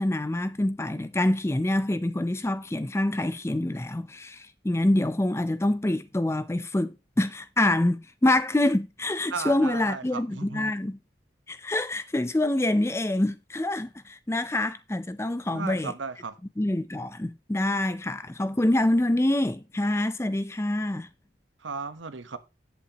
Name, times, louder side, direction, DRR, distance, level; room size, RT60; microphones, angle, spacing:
voice 1, 0.0-11.0 11.5-15.9 16.6-21.1, left 1 dB, 15° left, 0.4 m, -26 dB
voice 2, 9.3-10.7 15.5-16.3 21.6-22.4, right 5 dB, 90° right, 1.1 m, -35 dB
10.0 x 8.4 x 2.9 m
head